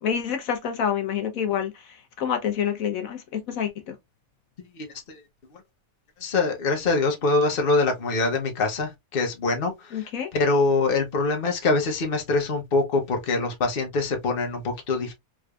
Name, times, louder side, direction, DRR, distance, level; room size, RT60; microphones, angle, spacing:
voice 1, 0.0-3.9 9.9-10.3, left 8 dB, 75° left, 1.2 m, -28 dB
voice 2, 4.8-5.2 6.2-15.1, left 3 dB, 45° left, 1.2 m, -24 dB
3.8 x 3.3 x 2.3 m
omnidirectional pair, 1.5 m